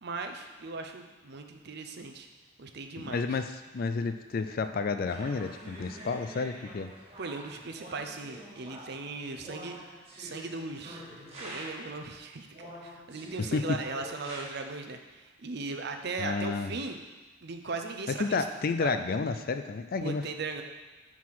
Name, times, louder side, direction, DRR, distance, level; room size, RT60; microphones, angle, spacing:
voice 1, 0.0-2.3 2.6-3.4 7.2-9.8 10.2-11.0 11.4-17.1 17.4-18.4 18.8-19.0 20.0-20.6, right 3 dB, 55° right, 5 dB, 0.6 m, -38 dB
voice 2, 3.0-6.9 13.5-13.8 16.2-16.8 18.2-20.2, left 4 dB, 45° left, 9 dB, 0.4 m, -31 dB
sound 1, 5.0-12.0 12.5-14.4, right 1 dB, 30° right, 1.6 m, -46 dB
5.6 x 4.8 x 5.9 m, 1.3 s
head